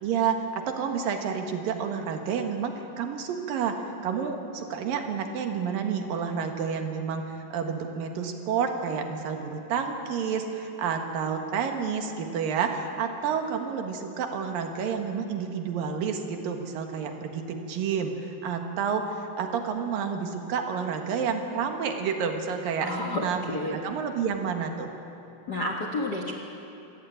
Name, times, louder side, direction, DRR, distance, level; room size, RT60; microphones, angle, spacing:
voice 1, 0.0-7.2 7.5-23.4 23.7-24.9, right 6 dB, 75° right, 5 dB, 3.3 m, -30 dB
voice 2, 22.8-23.8 25.5-26.3, left 2 dB, 45° left, 2 dB, 1.3 m, -30 dB
26.5 x 16.5 x 9.3 m, 2.8 s
omnidirectional pair, 4.2 m